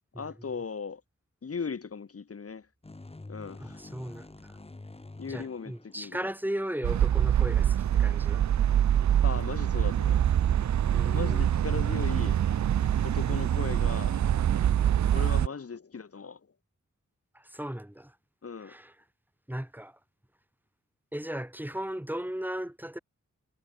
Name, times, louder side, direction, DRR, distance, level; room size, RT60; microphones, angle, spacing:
voice 1, 0.2-1.0 1.4-2.7 3.3-3.8 5.2-6.3 9.2-10.2 11.1-12.4 13.0-14.2 15.1-16.4 18.4-18.7, left 5 dB, 50° left, 2.6 m, -37 dB
sound 1, 2.8-6.6, left 2 dB, 20° left, 2.0 m, -47 dB
voice 2, 3.6-4.6 5.3-8.5 10.9-11.5 17.3-18.2 18.6-18.9 19.5-20.0 21.1-23.0, right 1 dB, 5° right, 6.2 m, -36 dB
sound 2, 6.8-15.5, right 10 dB, 75° right, 0.7 m, -25 dB
wide cardioid pair, 90°, 29 cm